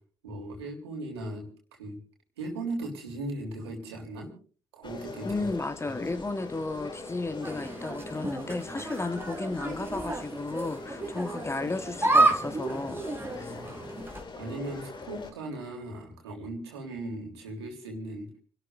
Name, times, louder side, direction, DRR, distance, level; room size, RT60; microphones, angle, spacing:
voice 1, 0.2-1.5 1.8-2.0 2.4-4.3 4.7-5.5 5.8-6.2 13.2-13.7 14.4-18.3, right 2 dB, 80° right, 3.6 m, -38 dB
sound 1, 4.8-15.3, left 3 dB, 35° left, 2.5 m, -42 dB
voice 2, 5.2-13.0 13.4-13.6, left 3 dB, 20° left, 1.4 m, -33 dB
sound 2, 7.4-14.2, right 2 dB, 15° right, 3.6 m, -30 dB
29.5 x 12.5 x 2.6 m
figure-of-eight pair, 50°, 13 cm